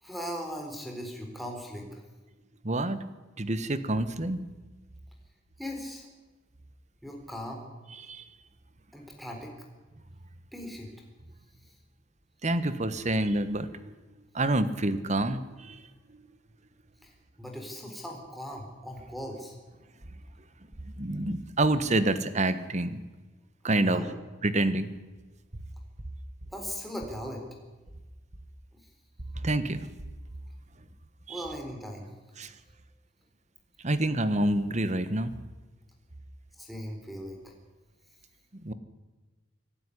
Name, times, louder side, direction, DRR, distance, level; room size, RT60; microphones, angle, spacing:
voice 1, 0.0-2.0 5.6-6.1 7.0-7.6 8.9-9.5 10.5-10.9 17.0-17.1 17.4-19.6 23.8-24.1 26.5-27.5 31.3-32.1 36.6-37.5, equal, ahead, 1 dB, 4.2 m, -38 dB
voice 2, 2.6-3.0 3.4-4.4 8.0-8.2 12.4-13.9 14.3-15.8 21.0-23.0 23.6-24.0 24.4-24.9 29.3-29.9 31.3-31.5 32.4-32.5 33.8-35.3 38.6-38.7, right 2 dB, 40° right, 13 dB, 1.4 m, -27 dB
25.5 x 12.5 x 10.0 m, 1.2 s
head